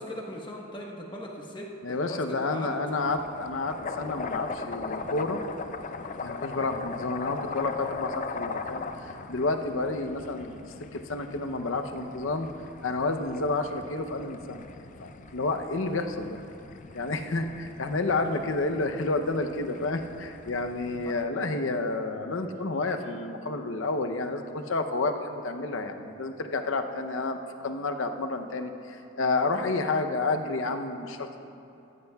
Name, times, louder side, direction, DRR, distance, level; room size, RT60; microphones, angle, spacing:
voice 1, 0.0-2.7 18.3-18.4 21.0-21.1, left 1 dB, 25° left, -1 dB, 1.2 m, -39 dB
voice 2, 1.8-5.4 6.2-10.6 10.9-12.5 12.8-14.6 15.0-16.4 16.9-31.4, left 3 dB, 75° left, 6 dB, 0.7 m, -30 dB
sound 1, 2.9-21.3, left 4 dB, 40° left, 0.4 m, -40 dB
15.0 x 14.5 x 2.3 m, 2.7 s
head